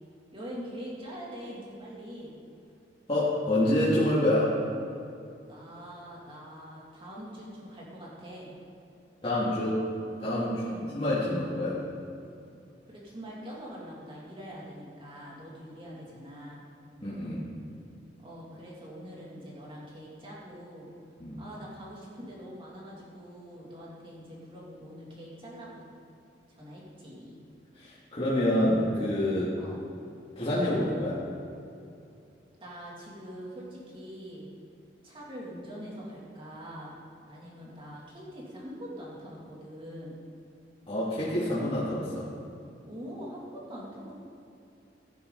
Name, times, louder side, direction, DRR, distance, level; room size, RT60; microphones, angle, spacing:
voice 1, 0.3-2.3 5.5-8.5 10.4-11.0 12.8-16.6 18.2-20.9 21.4-25.8 26.5-27.4 29.6-29.8 32.6-34.5 35.0-37.0 37.3-40.1 42.8-44.1, equal, 30° right, -5 dB, 2.9 m, -43 dB
voice 2, 3.1-4.5 9.2-9.8 10.2-10.6 11.0-11.8 17.0-17.4 21.2-21.4 27.7-29.5 30.4-31.2 40.9-42.3, left 1 dB, 30° left, -10 dB, 2.7 m, -27 dB
16.5 x 9.8 x 4.1 m, 2.6 s
head